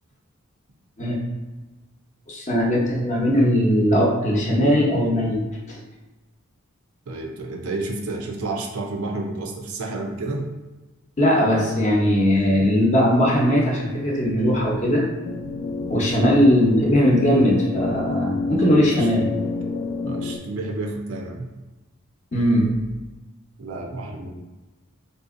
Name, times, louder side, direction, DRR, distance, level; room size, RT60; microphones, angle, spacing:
voice 1, 2.3-5.4 5.7-5.8 11.2-15.1 15.9-19.2 22.3-22.7, equal, 35° left, -3 dB, 0.7 m, -19 dB
voice 2, 7.1-10.6 12.3-12.7 15.9-16.3 18.4-19.1 20.0-21.5 23.6-24.3, right 2 dB, 90° right, 1 dB, 0.6 m, -31 dB
sound 1, 15.2-20.4, left 3 dB, 85° left, 0.4 m, -29 dB
3.5 x 2.7 x 2.5 m, 1.1 s
head